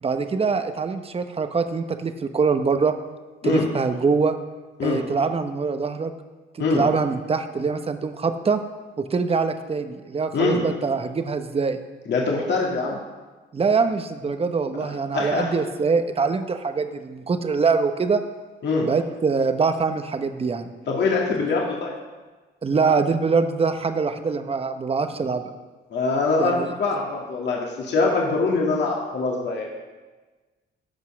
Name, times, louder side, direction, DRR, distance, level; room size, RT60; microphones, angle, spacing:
voice 1, 0.0-2.9 3.4-4.3 4.8-6.1 6.5-8.6 9.0-11.8 13.5-18.2 18.8-20.7 22.6-25.5 26.4-26.7, right 5 dB, 30° right, 8 dB, 0.9 m, -24 dB
voice 2, 12.1-13.0 14.8-15.5 18.6-18.9 20.9-21.9 25.9-29.7, left 3 dB, 60° left, -2 dB, 2.1 m, -23 dB
14.0 x 5.5 x 6.2 m, 1.3 s
cardioid pair, 90°, 20 cm